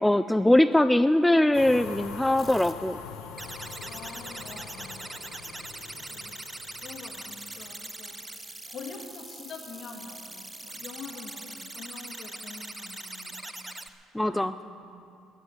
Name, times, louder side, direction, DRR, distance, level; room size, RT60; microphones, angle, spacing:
voice 1, 0.0-3.0 14.1-14.5, left 1 dB, 5° left, 13 dB, 0.3 m, -22 dB
sound 1, 1.5-7.8, left 6 dB, 80° left, 1.2 m, -43 dB
sound 2, 2.4-2.7 3.4-13.9, right 2 dB, 15° right, 0.8 m, -41 dB
voice 2, 3.9-5.0 6.0-6.3 6.7-13.4 14.2-14.9, left 5 dB, 55° left, 2 dB, 2.1 m, -45 dB
11.0 x 9.7 x 9.7 m, 2.6 s
supercardioid pair, 85°, 0 cm